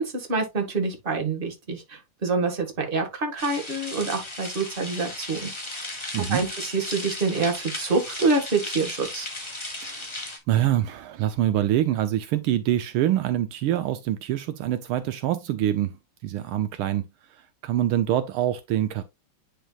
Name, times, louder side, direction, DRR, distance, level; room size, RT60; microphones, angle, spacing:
voice 1, 0.0-9.3, right 4 dB, 25° right, 1.7 m, -27 dB
sound 1, 3.4-10.4, left 2 dB, 15° left, 1.7 m, -36 dB
voice 2, 6.1-6.4 9.8-10.1 10.5-16.0 16.2-17.0 17.3-19.0, right 12 dB, 75° right, 1.5 m, -25 dB
10.0 x 4.5 x 2.4 m
omnidirectional pair, 2.4 m